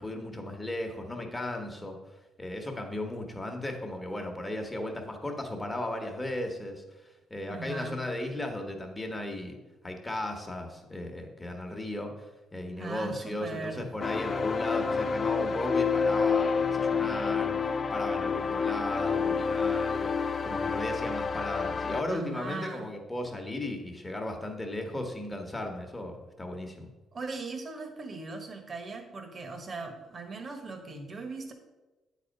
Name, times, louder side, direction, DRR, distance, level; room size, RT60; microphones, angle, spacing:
voice 1, 0.0-2.0 2.4-9.6 9.8-12.3 12.5-20.1 20.4-26.9, left 1 dB, 20° left, 3 dB, 1.3 m, -36 dB
voice 2, 7.5-8.0 12.8-13.9 22.1-22.9 27.1-31.5, right 3 dB, 40° right, 5 dB, 1.3 m, -39 dB
sound 1, 14.0-22.0, left 5 dB, 40° left, 0.4 m, -28 dB
8.8 x 4.2 x 5.3 m, 1.1 s
cardioid pair, 90°, 0 cm